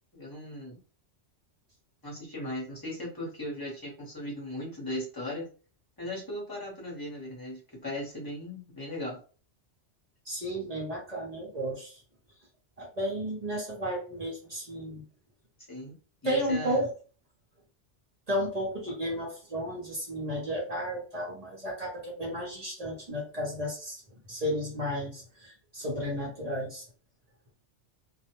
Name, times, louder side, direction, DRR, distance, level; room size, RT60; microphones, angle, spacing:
voice 1, 0.1-0.8 2.0-5.4 6.0-9.2 15.7-15.9 16.2-16.9, left 1 dB, 20° left, -2 dB, 0.9 m, -37 dB
voice 2, 10.3-12.0 12.8-15.0 16.2-16.9 18.3-24.0 24.3-26.8, equal, 40° right, -3 dB, 0.7 m, -33 dB
2.3 x 2.1 x 2.9 m, 0.38 s
omnidirectional pair, 1.2 m